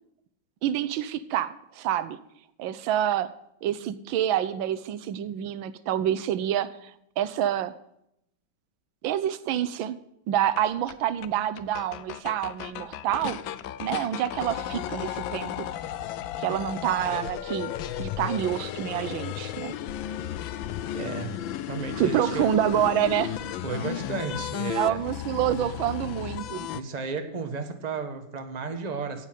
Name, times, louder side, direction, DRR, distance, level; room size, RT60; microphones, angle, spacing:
voice 1, 0.6-2.2 2.6-3.3 3.6-7.7 9.0-10.0 10.3-13.4 13.8-15.7 16.4-17.7 18.0-19.7 22.0-23.4 24.7-26.7, right 11 dB, 85° right, 14 dB, 1.5 m, -27 dB
sound 1, 10.6-10.7 10.9-11.0 11.2-11.3 11.6-26.8, left 11 dB, 90° left, 1.4 m, -34 dB
voice 2, 20.9-21.4 21.7-22.5 23.6-25.0 26.7-29.3, right 5 dB, 25° right, 6 dB, 1.1 m, -33 dB
10.5 x 8.3 x 9.0 m, 0.79 s
omnidirectional pair, 2.1 m